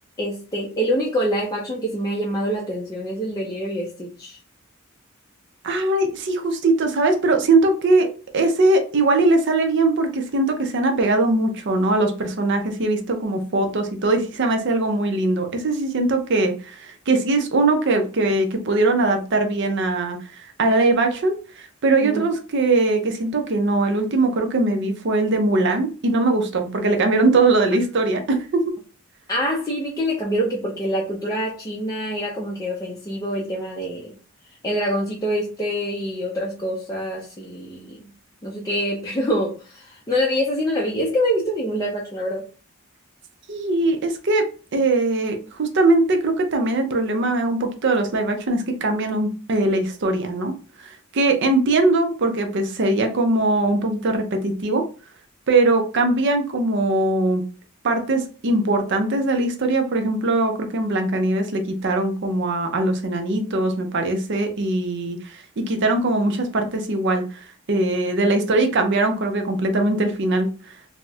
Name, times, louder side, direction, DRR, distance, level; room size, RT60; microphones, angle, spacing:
voice 1, 0.2-4.4 22.0-22.2 27.8-27.9 29.3-34.1 34.6-38.1 38.4-42.4, equal, 15° left, -3 dB, 0.4 m, -25 dB
voice 2, 5.6-8.1 8.3-20.2 20.6-28.7 43.5-44.5 44.7-50.5 50.8-54.8 55.5-57.4 57.8-67.2 67.7-70.5, right 2 dB, 55° right, 5 dB, 0.5 m, -21 dB
3.9 x 2.0 x 2.3 m, 0.36 s
head